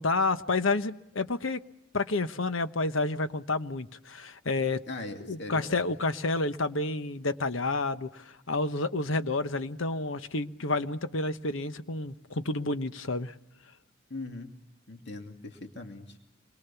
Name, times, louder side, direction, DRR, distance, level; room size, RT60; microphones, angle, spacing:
voice 1, 0.0-1.6 1.9-4.8 5.2-13.3, left 3 dB, 75° left, 1.1 m, -30 dB
voice 2, 4.9-5.9 14.1-14.5 14.9-16.3, left 2 dB, 55° left, 2.5 m, -40 dB
27.0 x 22.5 x 7.0 m
head